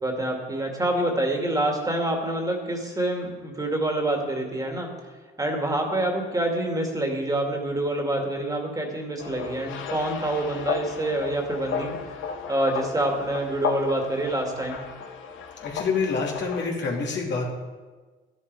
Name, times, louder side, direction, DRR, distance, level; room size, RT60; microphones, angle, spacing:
voice 1, 0.0-4.9 5.4-11.9 12.5-14.8, right 1 dB, 20° right, 2 dB, 2.4 m, -26 dB
sound 1, 9.2-16.7, left 6 dB, 80° left, 1.2 m, -34 dB
voice 2, 15.6-17.5, left 4 dB, 65° left, -1 dB, 2.7 m, -27 dB
12.0 x 11.0 x 4.8 m, 1.3 s
cardioid pair, 90°, 20 cm